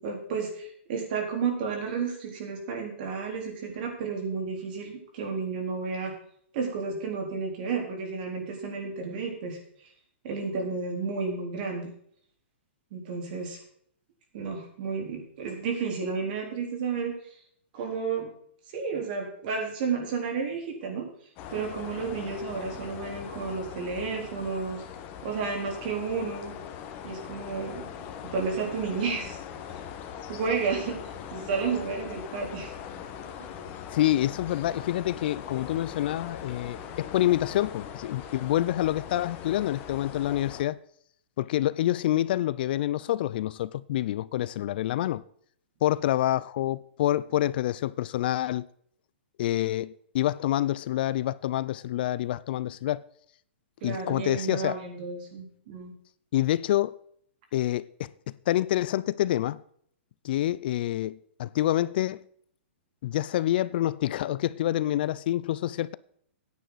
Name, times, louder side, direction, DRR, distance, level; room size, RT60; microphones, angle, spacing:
voice 1, 0.0-6.1 6.5-9.6 10.2-11.9 12.9-13.6 14.3-17.2 17.7-18.3 18.7-21.1 21.5-24.8 25.2-26.5 27.0-27.8 28.2-29.4 30.3-32.7 33.4-33.5 53.8-55.9, right 5 dB, 45° right, 4.0 m, -32 dB
sound 1, 21.4-40.6, left 8 dB, 30° left, 1.4 m, -41 dB
voice 2, 33.9-40.8 41.4-45.2 45.8-48.7 49.4-53.0 53.8-54.8 56.3-56.9 57.5-58.1 58.5-59.6 60.2-62.2 63.0-65.9, left 13 dB, 50° left, 0.4 m, -27 dB
14.0 x 9.6 x 4.1 m
hypercardioid pair, 145°, 7 cm